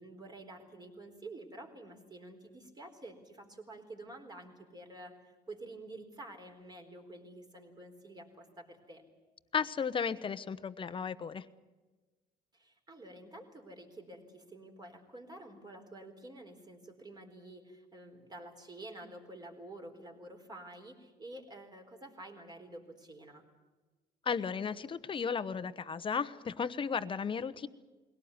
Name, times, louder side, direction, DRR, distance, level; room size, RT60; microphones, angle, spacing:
voice 1, 0.0-9.0 12.5-23.4, right 1 dB, 25° right, 3 dB, 4.2 m, -49 dB
voice 2, 9.5-11.4 24.2-27.7, left 6 dB, 30° left, 12 dB, 1.0 m, -34 dB
22.0 x 17.5 x 9.7 m, 1.3 s
cardioid pair, 110°, 17 cm